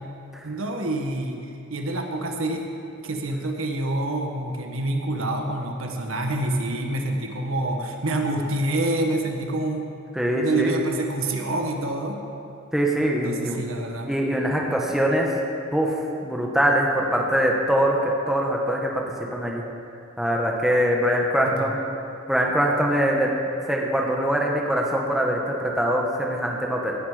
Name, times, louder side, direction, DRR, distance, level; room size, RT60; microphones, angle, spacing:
voice 1, 0.4-1.4 1.7-2.6 3.0-9.9 10.3-12.2 13.2-14.1 21.6-21.7, right 2 dB, 85° right, 2 dB, 1.6 m, -27 dB
voice 2, 10.1-10.7 12.7-13.6 14.1-15.3 15.7-19.0 19.3-19.6 20.2-21.8 22.3-23.3 23.6-27.0, equal, ahead, -1 dB, 1.4 m, -23 dB
17.5 x 10.0 x 5.1 m, 2.6 s
head